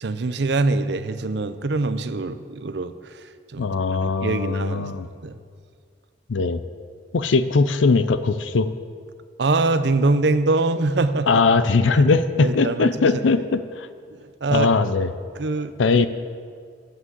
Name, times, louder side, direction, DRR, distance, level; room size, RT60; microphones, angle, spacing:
voice 1, 0.0-2.9 3.5-3.7 4.0-4.9 5.2-5.3 9.4-11.4 11.8-12.0 12.4-13.1 14.1-14.7 15.3-15.7, right 3 dB, 65° right, 11 dB, 0.6 m, -23 dB
voice 2, 3.6-5.1 6.3-6.6 7.1-8.7 11.3-13.9 14.5-15.1 15.8-16.1, left 4 dB, 90° left, 12 dB, 0.5 m, -20 dB
9.9 x 8.1 x 7.9 m, 2.1 s
head